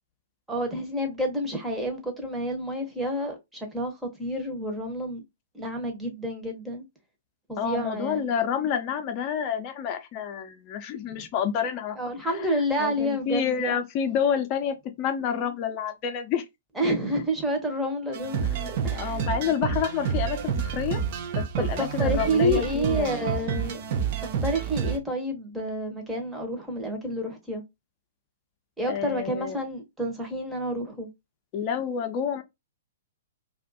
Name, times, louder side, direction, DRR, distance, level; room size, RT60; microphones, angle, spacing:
voice 1, 0.5-5.2 5.5-6.8 7.5-8.3 11.1-11.3 12.0-13.8 16.8-19.2 21.6-23.8 24.2-27.6 28.8-31.1, equal, 5° right, 0.9 m, -29 dB
voice 2, 7.6-12.0 12.3-16.4 18.4-21.0 21.3-23.3 28.9-29.6 31.5-32.4, left 7 dB, 35° left, 0.6 m, -29 dB
sound 1, 18.1-25.0, right 7 dB, 45° right, 0.5 m, -29 dB
2.4 x 2.4 x 2.6 m
figure-of-eight pair, 115°, 0 cm